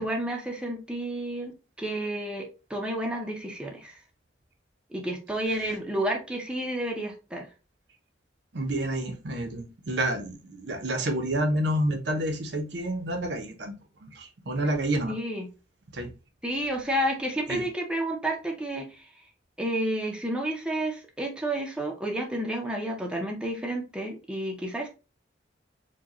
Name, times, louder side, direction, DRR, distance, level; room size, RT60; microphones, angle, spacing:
voice 1, 0.0-4.0 4.9-7.5 15.1-15.5 16.4-19.1 19.6-24.9, right 1 dB, 5° right, 0.6 m, -31 dB
voice 2, 8.5-13.7 14.0-15.1 15.9-16.1 17.5-17.7, right 1 dB, 65° right, 0.7 m, -29 dB
4.6 x 2.2 x 2.9 m
head